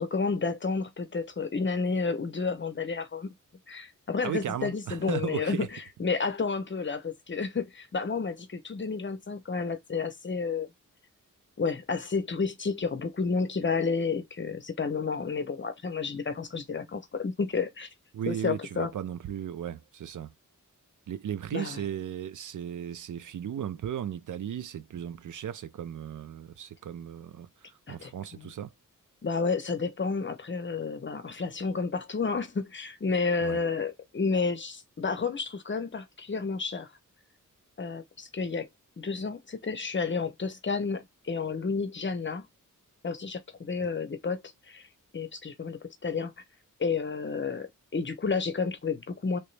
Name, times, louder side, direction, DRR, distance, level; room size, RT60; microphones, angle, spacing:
voice 1, 0.0-3.3 3.7-5.7 6.0-10.7 11.6-17.9 18.3-18.9 21.5-21.8 27.9-28.5 29.2-36.9 37.8-38.7 39.0-42.4 43.0-44.4 44.7-44.9 45.1-46.3 46.8-49.4, left 4 dB, 35° left, 0.7 m, -31 dB
voice 2, 4.2-5.7 18.1-20.3 21.1-28.7 33.4-33.6, right 9 dB, 70° right, 0.5 m, -36 dB
3.1 x 3.0 x 3.2 m
wide cardioid pair, 145°, 32 cm